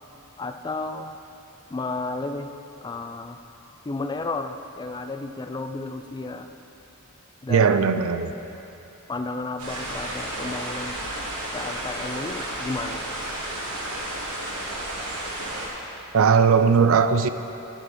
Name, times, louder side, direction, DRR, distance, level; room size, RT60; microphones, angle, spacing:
voice 1, 0.4-1.2 1.7-2.5 2.8-3.4 3.8-6.5 7.4-7.9 9.1-11.0 11.5-13.1, left 3 dB, 20° left, 7 dB, 0.3 m, -32 dB
voice 2, 7.5-8.3 16.1-17.3, right 6 dB, 65° right, 10 dB, 0.4 m, -18 dB
sound 1, 9.6-15.7, right 1 dB, 85° right, 1.7 m, -32 dB
11.0 x 10.0 x 4.3 m, 3.0 s
head